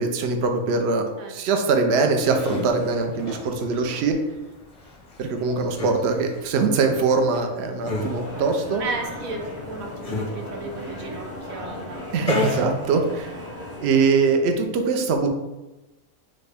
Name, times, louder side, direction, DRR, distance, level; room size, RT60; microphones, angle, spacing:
voice 1, 0.0-1.0 1.3-4.2 5.2-8.8 12.1-13.4 13.8-15.3, right 4 dB, 60° right, 4 dB, 0.8 m, -22 dB
voice 2, 1.2-1.7 8.8-12.3 13.1-13.2, right 3 dB, 85° right, 3 dB, 1.2 m, -35 dB
sound 1, 2.0-13.5, left 2 dB, 40° left, 0.6 m, -34 dB
sound 2, 7.9-14.4, left 1 dB, 15° right, 0.6 m, -36 dB
6.3 x 2.2 x 3.4 m, 1.1 s
omnidirectional pair, 1.4 m